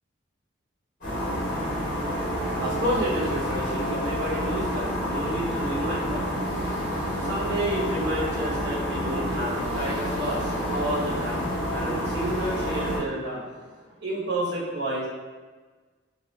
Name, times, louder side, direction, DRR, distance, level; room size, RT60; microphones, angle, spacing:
sound 1, 1.0-13.0, equal, 45° left, 1.4 m, -29 dB
voice 1, 2.5-13.5 14.0-15.1, right 1 dB, 60° right, -5 dB, 0.9 m, -30 dB
3.1 x 2.3 x 2.9 m, 1.4 s
head